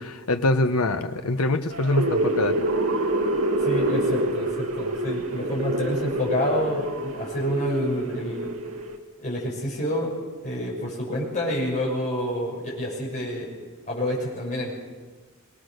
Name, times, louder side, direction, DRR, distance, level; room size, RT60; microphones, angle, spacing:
voice 1, 0.3-2.6, left 2 dB, 80° left, 7 dB, 1.2 m, -23 dB
sound 1, 1.7-9.0, right 1 dB, 75° right, 2.0 m, -26 dB
voice 2, 3.6-8.6 9.2-10.1 10.4-13.5 13.9-14.7, left 1 dB, 35° left, -4 dB, 6.5 m, -28 dB
22.5 x 19.0 x 6.7 m, 1.4 s
head